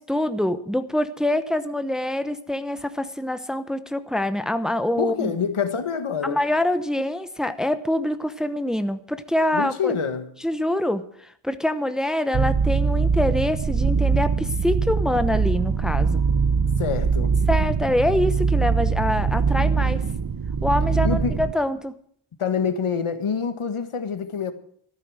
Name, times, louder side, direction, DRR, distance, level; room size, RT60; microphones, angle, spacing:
voice 1, 0.0-5.3 6.2-9.9 10.4-11.0 11.4-16.2 17.5-20.0 20.6-21.9, left 1 dB, ahead, 0.9 m, -25 dB
voice 2, 5.0-6.4 9.5-10.3 16.8-17.4 21.0-21.4 22.4-24.5, left 6 dB, 80° left, 1.6 m, -26 dB
sound 1, 12.3-21.5, right 5 dB, 45° right, 0.9 m, -22 dB
13.5 x 12.0 x 6.4 m
wide cardioid pair, 85°, 49 cm